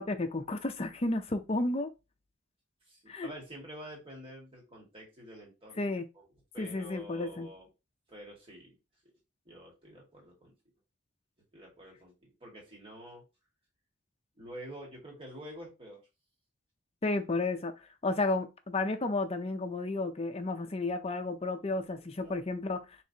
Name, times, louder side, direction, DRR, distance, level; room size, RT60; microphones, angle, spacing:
voice 1, 0.0-1.9 3.1-3.3 5.8-6.1 6.6-7.5 17.0-17.7 18.0-22.8, left 2 dB, 30° left, 0.5 m, -32 dB
voice 2, 2.9-5.9 6.1-6.3 6.5-7.7 8.1-8.8 9.5-10.5 11.5-13.2 14.4-16.0 22.2-22.4, equal, 30° right, 1.9 m, -48 dB
4.5 x 3.3 x 2.8 m
head